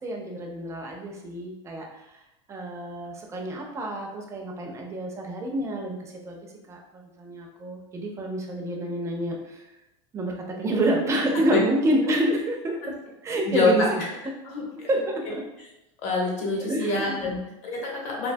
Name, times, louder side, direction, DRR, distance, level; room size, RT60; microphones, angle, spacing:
voice 1, 0.0-2.1 2.5-6.4 6.7-9.6 10.1-12.9 13.2-14.1 14.9-15.4 16.6-17.5, right 1 dB, 15° right, 0 dB, 0.4 m, -28 dB
voice 2, 13.4-13.9 14.4-14.6 15.3-15.4 16.0-18.3, left 3 dB, 45° left, -2 dB, 0.9 m, -26 dB
2.6 x 2.2 x 2.5 m, 0.92 s
supercardioid pair, 135°, 16 cm